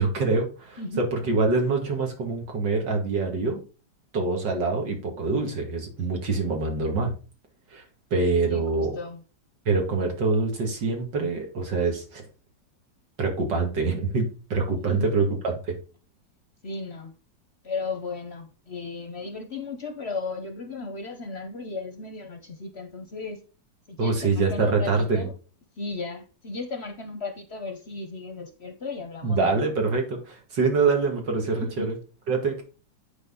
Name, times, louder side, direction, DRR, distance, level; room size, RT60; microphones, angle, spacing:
voice 1, 0.0-0.8 1.1-3.6 4.1-7.1 7.7-7.8 8.1-8.9 9.7-12.2 13.2-15.3 24.0-25.3 29.2-31.9 32.3-32.6, right 3 dB, 85° right, 2.7 m, -25 dB
voice 2, 8.5-9.2 14.9-15.1 16.6-17.1 17.6-23.4 23.9-25.3 25.8-29.6 31.6-31.9, left 3 dB, 50° left, 0.9 m, -35 dB
9.5 x 4.4 x 3.7 m
omnidirectional pair, 1.9 m